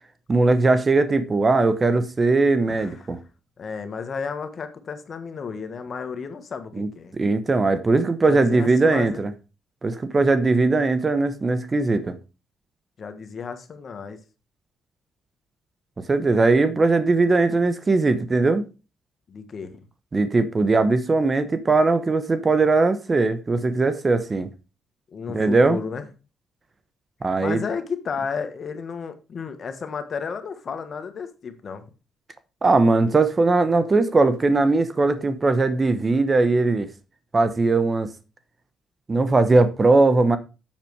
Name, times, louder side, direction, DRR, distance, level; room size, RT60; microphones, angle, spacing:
voice 1, 0.3-3.2 6.8-6.9 7.2-9.3 9.8-12.1 16.1-18.6 20.1-24.5 25.3-25.8 27.2-27.6 32.6-36.9 37.3-38.1 39.1-40.4, right 3 dB, 30° right, 0.9 m, -19 dB
voice 2, 2.7-3.2 3.6-7.2 8.3-9.2 13.0-14.2 19.3-19.8 25.1-26.1 27.4-31.9, left 5 dB, 50° left, 1.4 m, -33 dB
7.4 x 6.9 x 4.7 m
cardioid pair, 90°, 0 cm